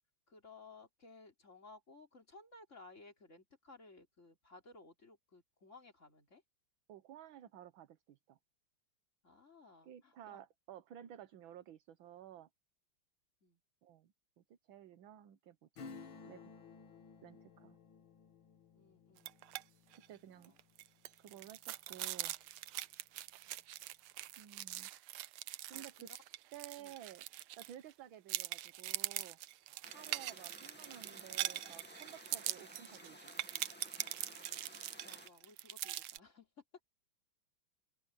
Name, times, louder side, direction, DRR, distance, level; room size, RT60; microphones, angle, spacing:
voice 1, 0.3-6.4 9.2-10.4 13.4-13.6 18.8-19.3 20.3-20.6 23.5-23.6 25.7-26.2 26.8-27.0 34.2-34.4 35.0-36.5, left 3 dB, 35° left, 3.8 m, -59 dB
voice 2, 6.9-8.4 9.8-12.5 13.8-15.9 16.2-16.4 17.2-17.8 20.1-20.5 21.2-22.3 24.4-24.9 25.7-26.1 26.5-27.2 27.6-29.4 29.9-33.4, right 11 dB, 70° right, 1.7 m, -54 dB
Acoustic guitar / Strum, 15.8-22.0 22.3-22.4, left 4 dB, 70° left, 2.4 m, -56 dB
sound 1, 19.2-19.6 19.9-20.1 20.4-27.9 28.3-36.2, right 14 dB, 90° right, 1.6 m, -43 dB
sound 2, 29.8-35.3, left 1 dB, 5° left, 1.9 m, -56 dB
open air
omnidirectional pair, 2.3 m